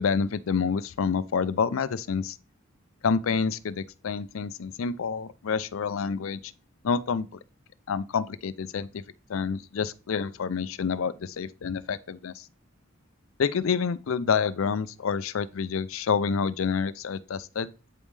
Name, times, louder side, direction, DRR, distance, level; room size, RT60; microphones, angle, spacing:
voice 1, 0.0-2.4 3.0-6.4 6.8-7.3 7.9-9.0 9.3-12.4 13.4-17.7, left 6 dB, 75° left, 0.4 m, -28 dB
8.4 x 5.3 x 3.2 m
head